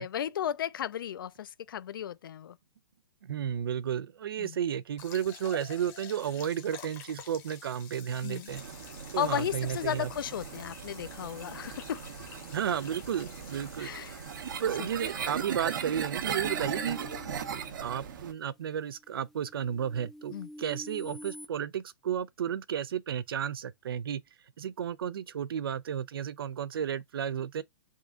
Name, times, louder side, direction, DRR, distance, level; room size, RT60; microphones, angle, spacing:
voice 1, 0.0-2.6 4.4-4.6 8.2-8.5 9.2-12.0 13.8-14.2 14.8-14.9 20.3-20.5, left 10 dB, 70° left, 0.4 m, -34 dB
voice 2, 3.2-8.6 9.1-10.1 12.5-13.9 14.6-17.0 17.5-24.2 24.6-27.6, right 9 dB, 90° right, 0.5 m, -33 dB
sound 1, 5.0-16.9, left 8 dB, 20° left, 0.8 m, -50 dB
sound 2, 8.5-18.3, right 7 dB, 60° right, 0.8 m, -38 dB
sound 3, 16.4-18.4 18.9-21.5, equal, ahead, 0.3 m, -47 dB
3.6 x 2.3 x 3.7 m
hypercardioid pair, 165°, 12 cm